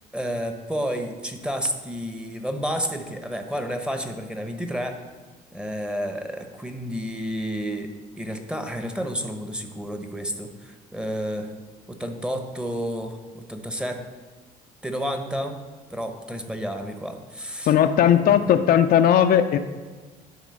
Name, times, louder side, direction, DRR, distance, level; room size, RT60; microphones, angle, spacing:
voice 1, 0.1-5.0 5.5-11.5 11.9-14.0 14.8-15.6 15.9-17.7, equal, 5° right, 6 dB, 0.9 m, -30 dB
voice 2, 17.7-19.6, left 9 dB, 60° left, 8 dB, 0.5 m, -17 dB
10.5 x 3.7 x 6.4 m, 1.4 s
cardioid pair, 110°, 17 cm